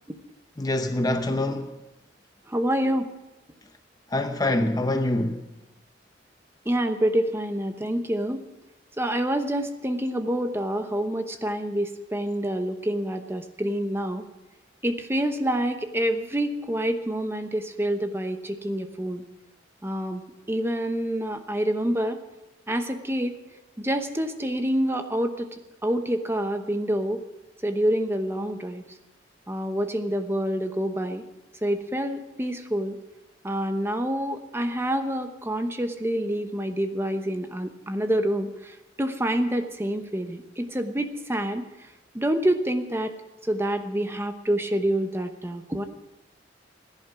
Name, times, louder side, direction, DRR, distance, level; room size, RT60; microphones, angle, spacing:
voice 1, 0.6-1.7 4.1-5.4, left 1 dB, 20° left, 0.7 m, -25 dB
voice 2, 2.5-3.1 6.6-8.4 9.0-14.2 14.8-19.2 19.8-22.2 22.7-23.3 23.8-25.5 25.8-27.2 27.6-28.8 29.5-31.2 31.6-33.0 33.4-41.6 42.1-43.1 43.4-45.8, right 1 dB, 15° right, 0.9 m, -27 dB
16.0 x 10.5 x 6.1 m
head